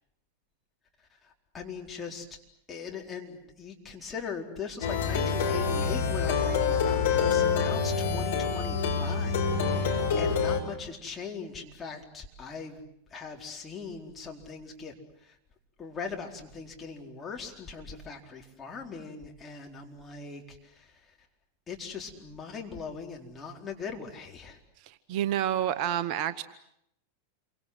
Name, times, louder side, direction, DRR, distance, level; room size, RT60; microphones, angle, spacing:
voice 1, 1.2-2.3 2.7-12.8 13.1-14.9 15.2-15.4 15.8-21.0 21.7-24.6, left 5 dB, 20° left, 1 dB, 4.4 m, -40 dB
Plucked string instrument, 4.8-10.6, left 5 dB, 55° left, 4.7 m, -26 dB
voice 2, 24.9-26.4, right 11 dB, 45° right, 13 dB, 1.1 m, -29 dB
28.5 x 25.0 x 8.0 m, 0.76 s
figure-of-eight pair, 90°, 0 cm